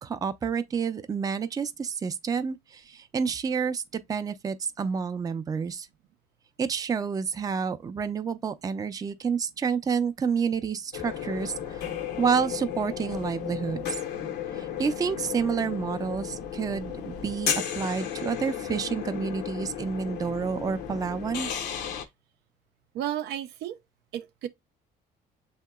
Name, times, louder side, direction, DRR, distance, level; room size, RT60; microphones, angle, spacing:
voice 1, 0.0-5.9 6.6-11.8 12.2-14.0 14.5-21.5, right 6 dB, 20° right, 0.4 m, -29 dB
sound 1, 10.9-22.0, left 9 dB, 85° left, 0.8 m, -34 dB
voice 2, 22.9-23.8 24.1-24.5, right 11 dB, 75° right, 0.5 m, -33 dB
7.1 x 2.8 x 2.2 m
cardioid pair, 110°, 17 cm